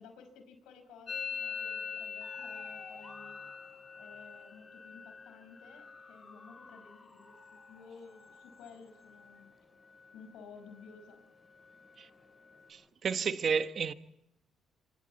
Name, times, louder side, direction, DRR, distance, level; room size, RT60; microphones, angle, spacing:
voice 1, 0.0-3.4 4.0-9.5 10.1-11.2, left 5 dB, 90° left, 5.2 m, -54 dB
Musical instrument, 1.1-8.7 9.0-9.5 9.8-10.4 10.7-12.7, left 6 dB, 45° left, 7.6 m, -45 dB
sound 1, 2.2-12.9, left 2 dB, 20° left, 4.2 m, -59 dB
voice 2, 12.7-13.9, right 6 dB, 55° right, 1.2 m, -31 dB
26.0 x 26.0 x 4.2 m
cardioid pair, 90°, 0 cm